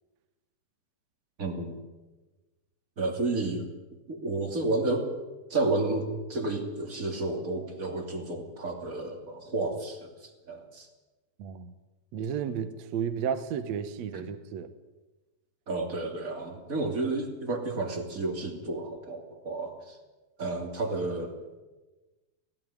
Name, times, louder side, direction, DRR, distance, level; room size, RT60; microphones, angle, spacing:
voice 1, 1.4-1.8 3.0-3.7 4.1-5.1 5.5-10.9 14.1-14.2 15.7-20.0 20.4-21.3, right 2 dB, 25° right, 3 dB, 2.6 m, -31 dB
voice 2, 11.4-11.7 12.1-14.7, right 7 dB, 65° right, 11 dB, 1.9 m, -32 dB
18.0 x 16.5 x 9.8 m, 1.2 s
omnidirectional pair, 4.4 m